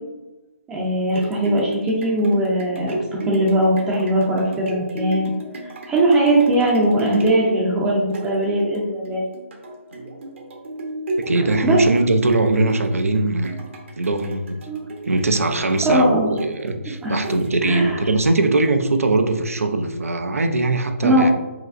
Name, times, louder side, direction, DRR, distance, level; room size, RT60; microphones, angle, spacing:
voice 1, 0.7-5.3 5.6-9.2 11.3-11.8 14.7-14.8 15.8-16.3 16.9-17.2 17.6-18.0 21.0-21.3, right 1 dB, 10° right, -4 dB, 0.6 m, -20 dB
sound 1, 0.8-18.0 18.5-18.6, right 1 dB, 60° right, 0.9 m, -33 dB
voice 2, 11.3-13.5 14.0-14.6 15.0-21.3, right 2 dB, 85° right, 7 dB, 0.6 m, -21 dB
4.9 x 3.1 x 2.5 m, 1.1 s
hypercardioid pair, 155°, 7 cm